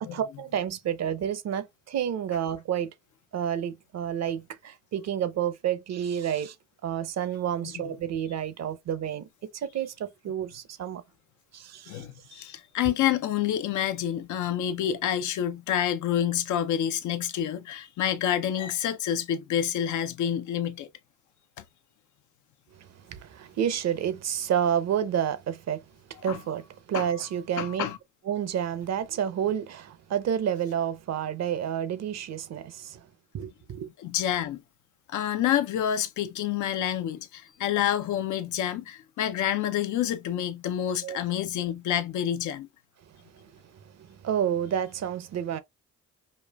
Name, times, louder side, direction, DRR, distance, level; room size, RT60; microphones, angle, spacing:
voice 1, 0.0-2.9 3.3-6.5 6.8-11.0 11.5-12.4 22.7-25.8 26.1-27.9 28.2-33.1 33.3-33.9 40.8-41.2 43.1-45.6, right 9 dB, 60° right, 0.7 m, -30 dB
voice 2, 11.9-20.9 26.3-26.4 26.9-27.1 27.6-28.0 34.0-34.6 35.1-42.7, left 10 dB, 75° left, 0.6 m, -28 dB
5.3 x 2.3 x 2.3 m
cardioid pair, 90°, 30 cm